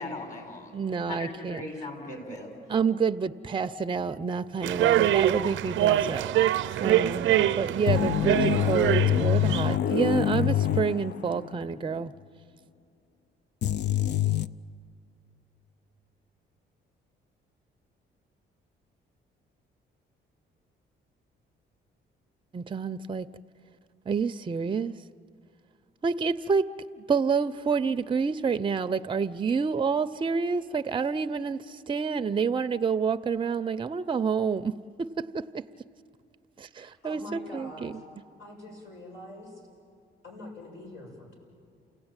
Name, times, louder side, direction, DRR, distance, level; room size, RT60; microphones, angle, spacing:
voice 1, 0.0-0.8 1.1-2.5, left 2 dB, 40° left, 3 dB, 6.4 m, -38 dB
voice 2, 0.7-1.6 2.7-6.4 6.8-12.1 22.5-23.3 24.1-24.9 26.0-35.6 36.6-37.9, right 5 dB, 25° right, 11 dB, 0.6 m, -28 dB
sound 1, 4.6-9.8, right 12 dB, 75° right, 0.5 m, -25 dB
sound 2, 7.9-11.6 11.9-12.0 13.6-14.5, left 11 dB, 60° left, 0.6 m, -25 dB
voice 3, 36.7-38.0 38.4-39.7 40.2-41.4, left 1 dB, 80° left, -1 dB, 6.9 m, -44 dB
29.0 x 17.0 x 8.9 m, 2.6 s
cardioid pair, 90°, 20 cm